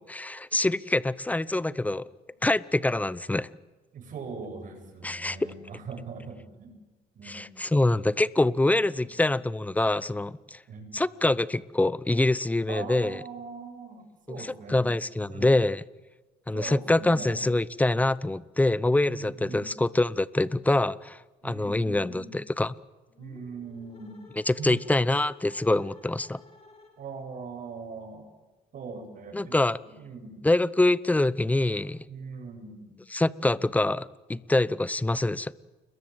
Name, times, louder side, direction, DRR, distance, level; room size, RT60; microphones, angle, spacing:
voice 1, 0.1-2.1 2.4-3.5 5.0-5.4 7.3-10.6 10.9-13.2 14.3-15.8 16.5-22.7 24.5-26.4 29.3-29.8 30.4-32.0 33.1-35.5, left 2 dB, 10° left, 19 dB, 0.8 m, -25 dB
voice 2, 3.9-6.8 7.1-7.7 8.9-9.2 10.7-10.9 12.7-14.9 15.3-15.5 16.5-17.4 19.0-19.7 21.4-22.4 23.2-24.3 24.6-24.9 27.0-28.3 28.7-29.6 29.8-30.5 32.1-32.9, right 5 dB, 50° right, 4 dB, 8.0 m, -41 dB
sound 1, 23.1-27.3, left 3 dB, 35° left, 6.5 m, -54 dB
30.0 x 21.5 x 8.1 m, 1.2 s
cardioid pair, 110°, 17 cm